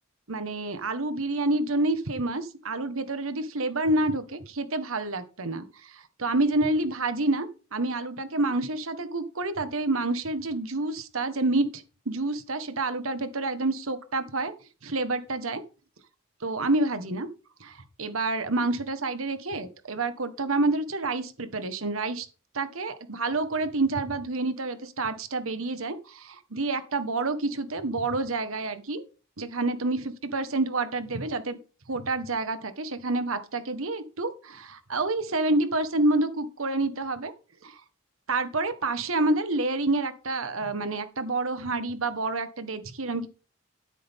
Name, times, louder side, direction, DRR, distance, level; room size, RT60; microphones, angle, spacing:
voice 1, 0.3-14.5 14.8-15.6 16.4-17.3 17.6-22.3 22.5-29.0 29.4-31.6 31.9-37.3 37.6-37.8 38.3-43.3, right 2 dB, 80° right, 1.5 m, -28 dB
12.5 x 9.9 x 3.7 m
head